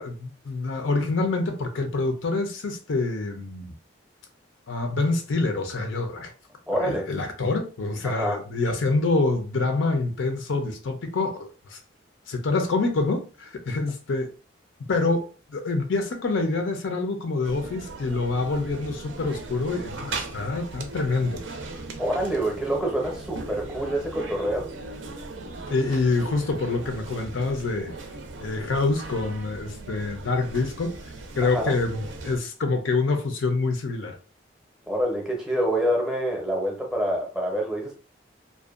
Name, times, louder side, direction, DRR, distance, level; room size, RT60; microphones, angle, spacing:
voice 1, 0.0-3.7 4.7-6.3 6.7-11.8 12.3-14.3 14.9-21.4 25.7-27.9 28.4-31.0 31.3-34.2, left 3 dB, 80° left, 0.5 m, -26 dB
voice 2, 6.7-7.1 8.0-8.4 22.0-24.7 31.4-31.7 34.9-37.9, right 1 dB, 5° right, 0.6 m, -26 dB
sound 1, 17.4-32.4, right 3 dB, 70° right, 0.4 m, -38 dB
2.5 x 2.2 x 2.4 m
head